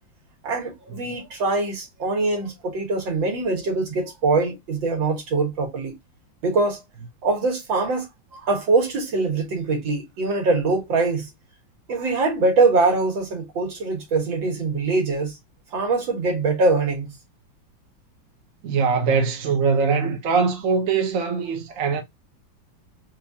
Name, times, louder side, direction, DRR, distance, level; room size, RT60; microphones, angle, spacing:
voice 1, 0.4-5.9 6.4-6.8 7.2-8.1 8.4-11.3 11.9-15.3 15.7-17.1, right 3 dB, 75° right, 2.2 m, -23 dB
voice 2, 18.6-22.0, right 5 dB, 50° right, 1.1 m, -22 dB
4.5 x 2.5 x 2.6 m
omnidirectional pair, 2.1 m